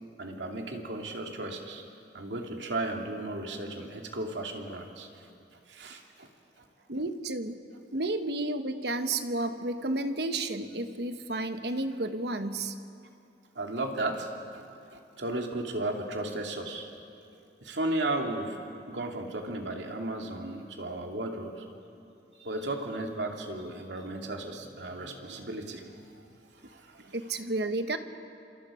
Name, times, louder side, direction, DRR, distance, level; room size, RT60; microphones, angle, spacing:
voice 1, 0.2-1.8 2.1-5.1 5.7-6.3 6.6-6.7 13.6-14.6 14.9-16.9 17.2-18.6 18.9-21.7 22.4-26.2 26.5-27.1, right 2 dB, 85° right, 2 dB, 2.6 m, -35 dB
voice 2, 6.9-7.6 7.9-12.7 27.1-28.0, right 2 dB, 65° right, 8 dB, 1.2 m, -31 dB
27.0 x 26.5 x 5.1 m, 2.6 s
head